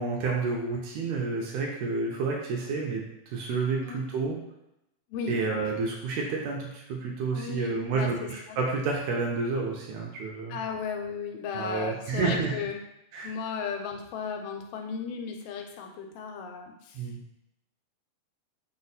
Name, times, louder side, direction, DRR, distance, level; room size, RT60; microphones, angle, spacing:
voice 1, 0.0-3.0 3.3-4.4 5.3-10.6 11.5-12.5 13.1-13.3 16.9-17.2, right 4 dB, 90° right, -1 dB, 1.5 m, -30 dB
voice 2, 7.3-8.6 10.5-12.8 13.2-17.0, left 6 dB, 90° left, 4 dB, 2.2 m, -35 dB
5.1 x 2.1 x 4.0 m, 0.84 s
omnidirectional pair, 3.8 m